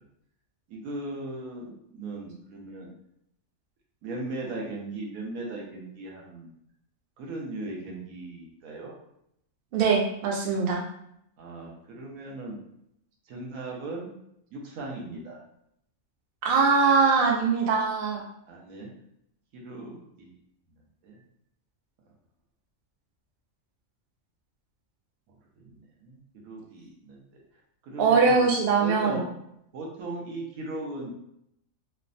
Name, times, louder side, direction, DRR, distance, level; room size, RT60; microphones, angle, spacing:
voice 1, 0.7-2.9 4.0-6.5 7.2-8.9 11.4-12.6 13.3-14.1 14.5-15.4 18.5-18.9 19.5-20.3 21.0-21.2 25.3-27.2 27.8-28.5 28.8-29.2 29.7-31.1, right 2 dB, 90° right, -1 dB, 1.1 m, -38 dB
voice 2, 9.7-10.8 16.4-18.2 28.0-29.2, right 5 dB, 60° right, -1 dB, 0.7 m, -22 dB
3.1 x 2.1 x 2.5 m, 0.77 s
omnidirectional pair, 1.4 m